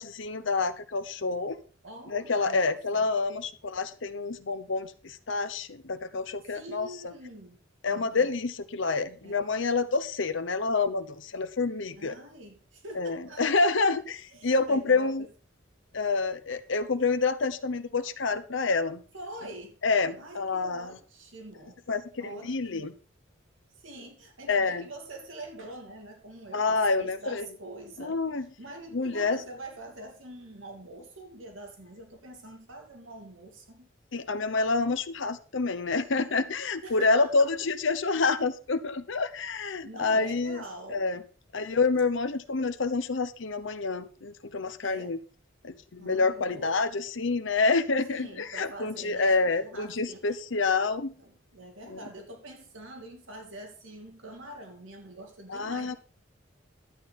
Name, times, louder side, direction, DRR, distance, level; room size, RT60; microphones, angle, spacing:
voice 1, 0.0-1.6 2.1-6.9 7.8-12.1 12.9-15.2 15.9-19.0 19.8-20.9 21.9-22.9 24.5-24.8 26.5-27.5 28.0-28.4 28.9-29.4 34.1-40.6 40.9-41.2 41.5-45.2 45.6-51.1 51.9-52.0 55.5-56.0, left 3 dB, 65° left, 9 dB, 0.8 m, -28 dB
voice 2, 1.8-3.1 6.4-7.6 7.8-8.4 9.2-9.5 12.0-13.9 14.3-15.1 19.1-19.8 20.2-21.8 22.2-22.9 23.8-28.2 28.6-33.9 36.8-37.5 39.7-41.0 44.8-45.2 46.0-46.8 48.1-50.5 51.2-56.0, right 1 dB, 80° right, 2 dB, 3.0 m, -45 dB
11.5 x 8.8 x 4.3 m, 0.38 s
head